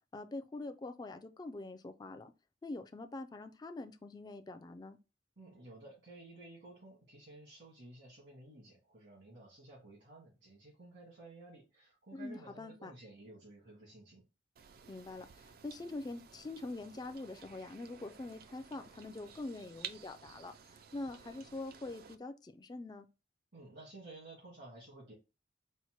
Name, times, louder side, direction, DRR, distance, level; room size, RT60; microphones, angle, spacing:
voice 1, 0.1-2.3 2.6-5.0 12.1-12.9 14.9-23.1, left 2 dB, 20° left, 0.3 m, -44 dB
voice 2, 5.4-14.2 23.5-25.1, right 2 dB, 80° right, 1.8 m, -54 dB
sound 1, 14.6-22.2, right 8 dB, 55° right, 0.4 m, -53 dB
4.2 x 2.1 x 4.4 m
head